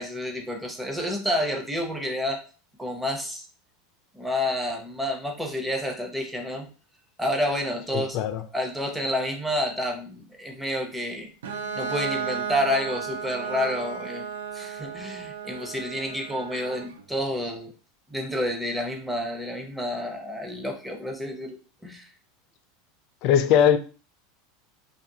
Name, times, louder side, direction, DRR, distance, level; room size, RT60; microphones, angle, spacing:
voice 1, 0.0-2.4 2.8-3.5 4.1-6.7 7.2-8.2 8.5-11.3 11.8-14.3 14.5-17.7 18.1-21.6 21.8-22.1, left 1 dB, 5° right, 0.7 m, -29 dB
voice 2, 7.9-8.4 23.2-23.8, left 9 dB, 55° left, 0.4 m, -20 dB
Bowed string instrument, 11.4-17.0, right 6 dB, 85° right, 0.3 m, -34 dB
2.6 x 2.4 x 2.7 m
supercardioid pair, 110°, 0 cm